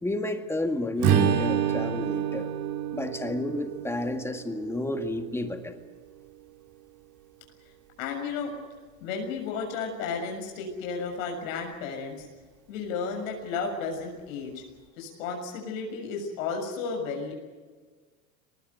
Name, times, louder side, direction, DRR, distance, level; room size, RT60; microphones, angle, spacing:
voice 1, 0.0-2.5 2.9-5.8, left 1 dB, 5° left, 6 dB, 2.1 m, -31 dB
Strum, 1.0-5.4, right 8 dB, 45° right, 2.8 m, -28 dB
voice 2, 8.0-8.5 9.0-12.3 12.7-14.6 15.0-17.3, left 5 dB, 70° left, 2 dB, 6.8 m, -33 dB
23.5 x 20.0 x 8.1 m, 1.4 s
supercardioid pair, 110°, 42 cm